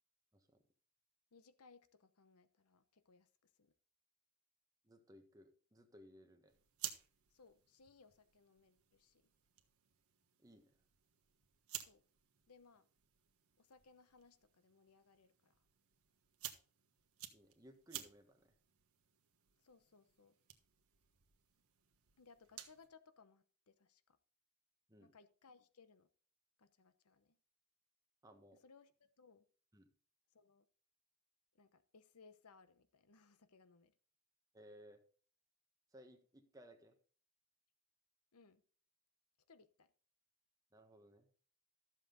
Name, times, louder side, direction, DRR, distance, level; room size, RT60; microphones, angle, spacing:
voice 1, 0.3-0.6 4.8-6.5 10.4-10.7 17.3-18.6 24.9-25.1 28.2-28.6 29.7-29.9 34.5-35.0 35.9-36.9 40.7-41.3, equal, 15° right, 1.3 m, -61 dB
voice 2, 1.3-3.7 7.3-9.2 11.8-12.0 12.5-12.9 13.6-15.6 19.6-20.4 22.2-24.2 25.0-26.1 26.6-27.4 28.6-29.4 30.3-30.7 31.5-33.9 38.3-38.6 39.5-39.9, left 4 dB, 85° left, 0.9 m, -66 dB
sound 1, 6.5-22.9, right 12 dB, 75° right, 1.3 m, -55 dB
13.0 x 7.5 x 3.8 m
head